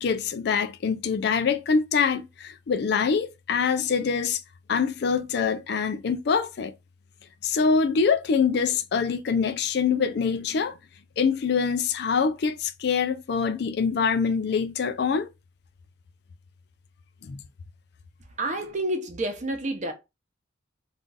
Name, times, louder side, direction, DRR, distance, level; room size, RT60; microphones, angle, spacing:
voice 1, 0.0-4.4 4.7-6.7 7.4-10.8 11.2-15.3 17.2-17.4, left 5 dB, 60° left, 0.4 m, -24 dB
voice 2, 18.4-19.9, right 1 dB, 40° right, 0.7 m, -29 dB
2.5 x 2.3 x 3.8 m
head